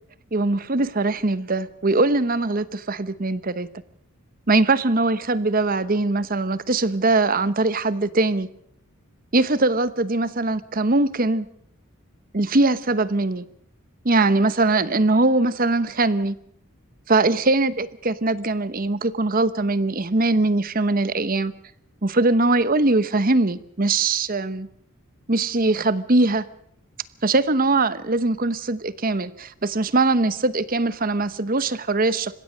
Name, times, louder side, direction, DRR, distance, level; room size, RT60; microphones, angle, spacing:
voice 1, 0.3-3.7 4.5-8.5 9.3-11.5 12.3-13.5 14.0-16.3 17.1-21.5 22.0-24.7 25.3-26.4 27.2-32.3, right 2 dB, 40° right, 1.0 m, -21 dB
29.5 x 16.5 x 6.4 m
head